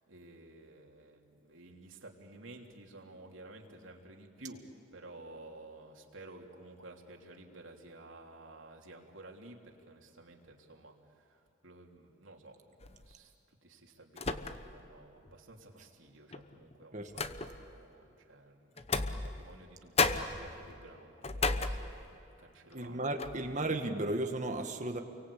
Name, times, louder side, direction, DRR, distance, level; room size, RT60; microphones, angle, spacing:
voice 1, 0.0-13.3 13.6-23.2, right 2 dB, 90° right, 1 dB, 3.2 m, -53 dB
sound 1, 12.8-13.1 14.2-14.9 15.3-15.4 16.3-17.8 18.8-19.7 20.0-22.3 22.7-22.9 23.2-23.5, left 4 dB, 30° left, 1.0 m, -34 dB
voice 2, 22.7-25.0, right 2 dB, 40° right, 5 dB, 1.9 m, -34 dB
29.5 x 23.5 x 8.6 m, 2.9 s
head